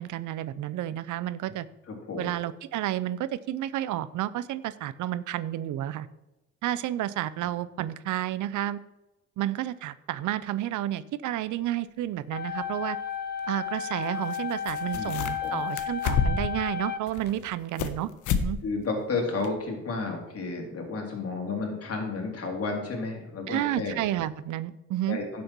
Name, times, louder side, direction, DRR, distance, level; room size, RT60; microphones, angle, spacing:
voice 1, 0.0-1.7 2.2-6.1 6.6-8.8 9.4-13.0 13.5-18.6 23.5-25.2, right 13 dB, 80° right, 17 dB, 0.6 m, -31 dB
voice 2, 1.9-2.3 14.9-15.1 15.4-15.6 18.6-24.0 25.1-25.4, left 3 dB, 50° left, 1 dB, 3.4 m, -32 dB
sound 1, 12.3-17.3, left 8 dB, 35° left, 1.2 m, -33 dB
sound 2, 12.6-12.7 14.3-14.4 14.6-15.5 15.8-16.6 17.1-18.0 18.2-18.5 18.8-18.9 19.4-19.5, left 6 dB, 80° left, 1.0 m, -28 dB
11.0 x 7.7 x 4.6 m, 0.99 s
cardioid pair, 90°, 30 cm